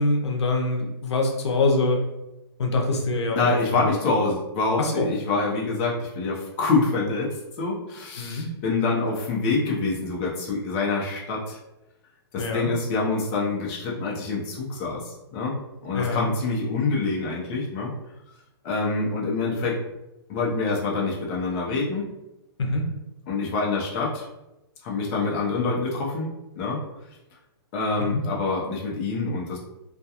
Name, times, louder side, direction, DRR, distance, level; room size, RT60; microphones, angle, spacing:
voice 1, 0.0-2.0 2.6-3.6 3.8-3.9 4.8-5.1 8.2-8.5 12.4-12.7 15.9-16.3 22.6-22.9 28.0-28.2, left 2 dB, 85° left, 1 dB, 0.6 m, -24 dB
voice 2, 3.3-11.6 12.3-15.6 15.8-17.9 18.6-19.8 20.3-22.1 23.3-24.3 24.8-26.8 27.7-29.6, left 3 dB, 30° left, -3 dB, 0.6 m, -26 dB
2.3 x 2.2 x 2.8 m, 0.93 s
hypercardioid pair, 150°, 14 cm